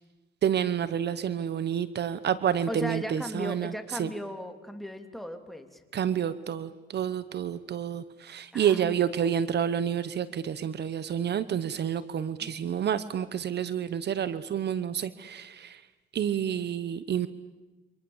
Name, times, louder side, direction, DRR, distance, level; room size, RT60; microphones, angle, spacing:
voice 1, 0.4-3.7 4.0-4.1 5.9-15.8 16.1-17.3, right 9 dB, 60° right, 14 dB, 1.1 m, -29 dB
voice 2, 2.7-5.8 8.5-9.3 12.4-12.5, equal, ahead, 6 dB, 3.0 m, -37 dB
28.5 x 25.5 x 7.2 m, 1.2 s
cardioid pair, 90°, 20 cm